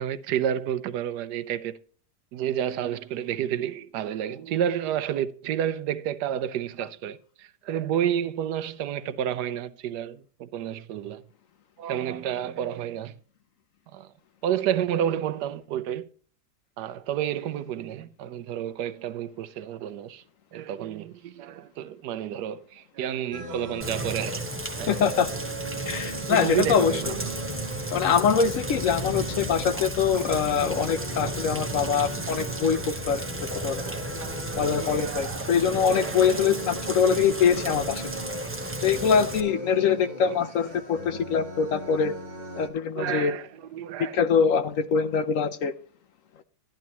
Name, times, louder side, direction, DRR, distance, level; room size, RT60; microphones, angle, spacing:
voice 1, 0.0-1.8 2.3-11.2 11.8-13.2 13.9-14.1 14.4-16.1 16.8-20.2 20.5-24.4 24.8-24.9 26.3-27.3 33.8-36.5 37.0-37.1 39.0-39.1 40.3-40.4 42.9-44.2, right 10 dB, 75° right, 1.2 m, -30 dB
sound 1, 23.3-42.7, equal, 25° left, 1.8 m, -39 dB
Rain, 23.8-39.4, right 2 dB, 15° right, 0.5 m, -34 dB
voice 2, 24.9-25.3 25.9-27.0 27.9-33.2 33.6-33.8 34.6-38.0 38.8-42.1 42.5-43.3 44.1-45.7, left 6 dB, 65° left, 0.8 m, -23 dB
12.0 x 10.5 x 2.9 m
omnidirectional pair, 1.8 m